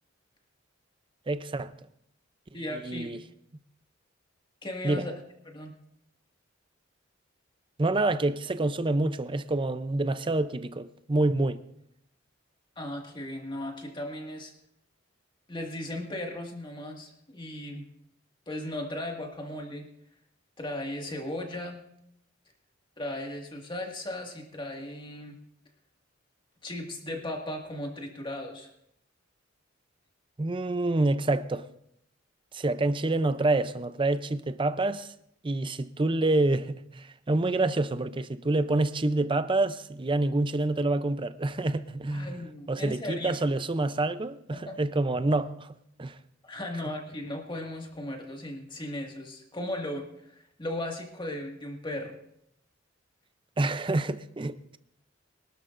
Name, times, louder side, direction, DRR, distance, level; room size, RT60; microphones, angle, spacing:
voice 1, 1.3-1.7 2.5-3.2 4.8-5.1 7.8-11.6 30.4-31.7 32.5-35.1 35.4-42.4 42.7-45.7 46.0-46.2 53.6-54.8, right 2 dB, 25° right, 0.5 m, -27 dB
voice 2, 2.5-3.1 4.6-5.1 5.5-5.7 12.8-14.5 15.5-17.9 18.5-19.9 20.6-21.8 23.0-25.3 26.6-28.7 42.1-43.4 44.5-44.8 46.4-52.2, left 1 dB, 25° left, 1.9 m, -36 dB
24.0 x 12.5 x 2.6 m
head